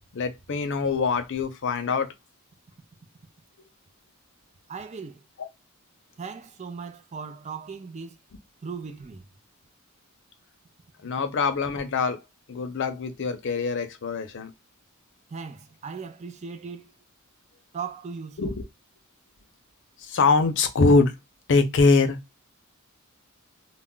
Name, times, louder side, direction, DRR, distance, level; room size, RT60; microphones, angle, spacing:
voice 1, 0.1-2.1 5.4-5.5 11.0-12.2 12.5-14.5 18.4-18.5 20.0-21.1 21.5-22.2, left 4 dB, 55° left, 0.5 m, -23 dB
voice 2, 4.7-5.2 6.2-8.2 8.6-9.3 15.3-16.9 17.7-18.6, right 5 dB, 30° right, 0.4 m, -38 dB
2.2 x 2.1 x 3.7 m
head